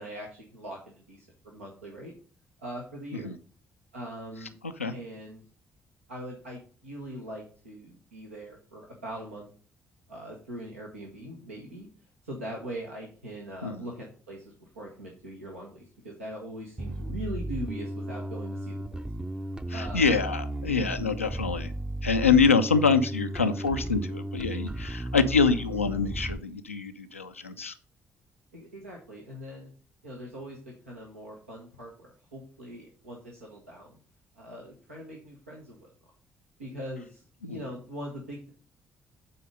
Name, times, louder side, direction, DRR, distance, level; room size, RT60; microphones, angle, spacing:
voice 1, 0.0-2.1 2.6-3.3 3.9-4.5 4.9-5.4 6.1-9.4 10.1-11.9 12.2-19.0 19.7-20.1 28.5-29.7 30.0-34.0 34.3-35.9 36.6-38.5, right 1 dB, 85° right, -2 dB, 1.1 m, -41 dB
Bass guitar, 16.8-26.4, right 1 dB, 10° right, 0.6 m, -35 dB
voice 2, 19.7-21.7 22.0-27.7 37.4-37.6, left 5 dB, 90° left, 8 dB, 0.4 m, -25 dB
8.5 x 4.1 x 5.2 m, 0.42 s
figure-of-eight pair, 40°, 7 cm